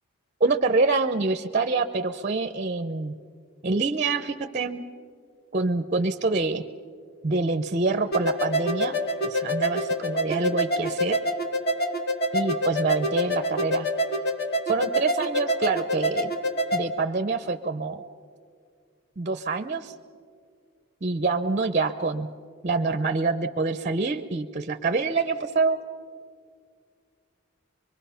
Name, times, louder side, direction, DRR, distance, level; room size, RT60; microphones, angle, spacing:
voice 1, 0.4-3.1 3.6-4.9 5.5-6.6 7.2-9.0 9.2-11.2 12.3-13.9 14.7-16.3 16.7-18.0 19.2-19.9 21.0-22.3 22.6-25.8, right 3 dB, 35° right, 10 dB, 0.6 m, -26 dB
sound 1, 8.1-16.8, equal, 45° left, 1.2 m, -27 dB
24.5 x 22.0 x 5.6 m, 2.2 s
head